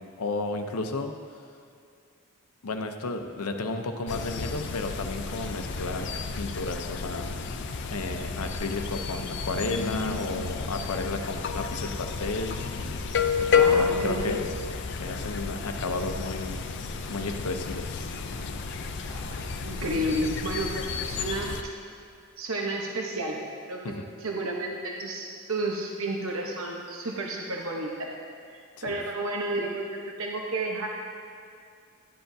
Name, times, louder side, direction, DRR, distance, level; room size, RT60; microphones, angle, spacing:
voice 1, 0.2-1.1 2.6-7.3 7.8-12.6 13.4-14.4 15.0-16.6 17.1-18.1 23.8-24.1 28.9-29.0, left 3 dB, 85° left, 6 dB, 0.7 m, -33 dB
sound 1, 4.1-21.6, left 5 dB, 50° left, 0.5 m, -31 dB
voice 2, 13.5-14.4 19.0-21.7 22.4-23.9 24.2-28.1 28.5-30.9, right 1 dB, 65° right, 0 dB, 0.9 m, -32 dB
11.5 x 10.5 x 2.7 m, 2.3 s
head